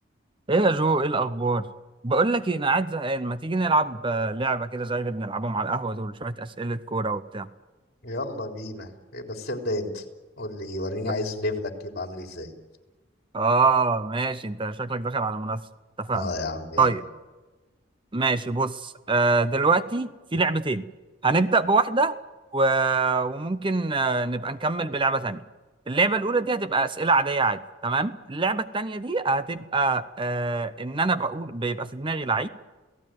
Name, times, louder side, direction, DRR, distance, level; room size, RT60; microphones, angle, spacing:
voice 1, 0.5-1.7 2.0-7.5 13.3-15.6 16.0-16.3 16.8-17.0 18.1-20.9 21.2-22.2 22.5-25.4 25.9-32.5, right 3 dB, 25° right, 12 dB, 0.7 m, -24 dB
voice 2, 8.0-10.0 10.4-12.5 16.1-16.9, left 2 dB, 55° left, 3 dB, 3.7 m, -31 dB
29.0 x 17.5 x 9.3 m, 1.2 s
head